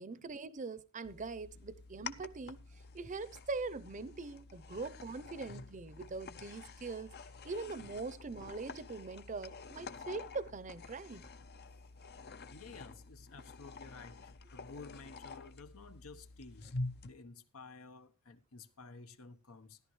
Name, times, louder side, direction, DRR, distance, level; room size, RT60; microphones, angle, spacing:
voice 1, 0.0-2.6 2.9-7.1 7.4-11.2, right 3 dB, 35° right, 0.7 m, -42 dB
sound 1, 1.0-17.1, left 3 dB, 50° left, 0.7 m, -48 dB
voice 2, 12.5-16.7 17.0-19.8, left 4 dB, 75° left, 1.1 m, -53 dB
13.5 x 11.5 x 3.1 m
head